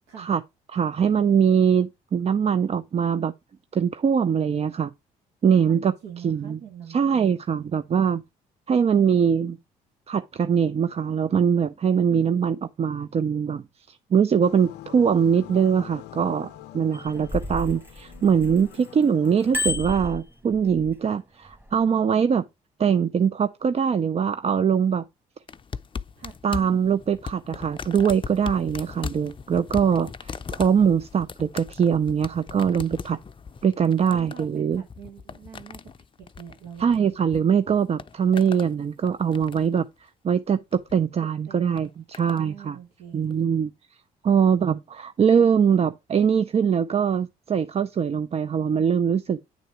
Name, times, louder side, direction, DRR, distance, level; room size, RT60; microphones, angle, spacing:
voice 1, 0.7-3.3 3.7-4.9 5.4-5.9 6.2-6.6 6.9-8.2 8.7-9.6 10.1-22.5 22.8-25.0 26.4-33.2 33.6-34.8 36.8-39.9 40.2-42.8 43.1-43.7 44.2-49.4, right 7 dB, 35° right, 0.5 m, -22 dB
voice 2, 5.5-7.4 8.7-9.6 12.1-12.6 17.1-17.3 26.2-26.8 34.1-35.9 36.2-37.0 41.2-41.8 42.2-43.3, right 8 dB, 70° right, 1.4 m, -44 dB
sound 1, 14.4-19.6, left 14 dB, 75° left, 0.5 m, -44 dB
Bicycle bell, 16.9-18.9 19.3-20.9 21.5-21.8, left 2 dB, 10° right, 1.7 m, -31 dB
sound 2, 25.5-37.4 37.7-38.7 39.1-39.8 40.7-41.0 41.8-42.4 43.3-43.4, left 6 dB, 30° left, 0.5 m, -39 dB
9.3 x 3.8 x 4.7 m
supercardioid pair, 60°, 17 cm